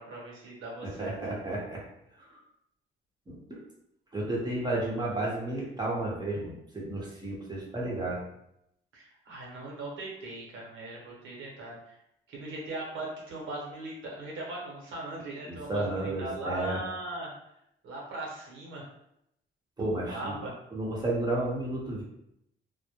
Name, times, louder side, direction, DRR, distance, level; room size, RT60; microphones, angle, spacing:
voice 1, 0.0-1.1 8.9-12.0 12.3-17.3 17.8-18.9 19.8-20.5, right 2 dB, 85° right, -3 dB, 0.9 m, -39 dB
voice 2, 1.0-1.8 3.3-3.6 4.1-8.2 15.5-16.8 19.8-20.4 20.7-22.0, right 2 dB, 20° right, -4 dB, 0.8 m, -32 dB
2.2 x 2.0 x 2.9 m, 0.79 s
cardioid pair, 90°, 20 cm